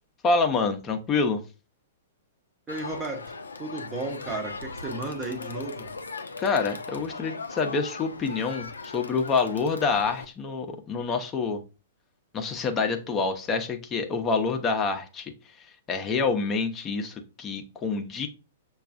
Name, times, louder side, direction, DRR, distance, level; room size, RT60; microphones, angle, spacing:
voice 1, 0.2-1.4 6.4-11.6 12.3-15.3 15.6-18.3, left 4 dB, 25° left, 0.6 m, -27 dB
Crowd, 2.7-10.2, left 4 dB, 80° left, 0.5 m, -39 dB
voice 2, 2.7-5.9, right 2 dB, 15° right, 0.7 m, -34 dB
6.6 x 2.3 x 2.5 m
figure-of-eight pair, 110°, 0 cm